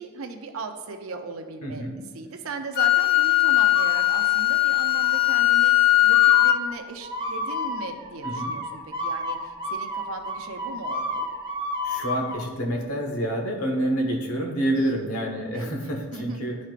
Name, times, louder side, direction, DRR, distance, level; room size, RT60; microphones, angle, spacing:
voice 1, 0.0-1.9 2.1-11.3 14.8-15.1 15.5-16.4, right 3 dB, 70° right, 5 dB, 0.7 m, -38 dB
voice 2, 1.6-2.0 8.2-8.5 11.8-16.6, right 1 dB, 85° left, 1 dB, 1.2 m, -28 dB
Wind instrument woodwind instrument, 2.7-6.6, left 16 dB, 45° left, 0.4 m, -19 dB
sound 1, 3.7-4.5 4.9-5.4 6.1-12.4, left 1 dB, 20° right, 0.8 m, -32 dB
11.0 x 4.2 x 2.5 m, 1.5 s
head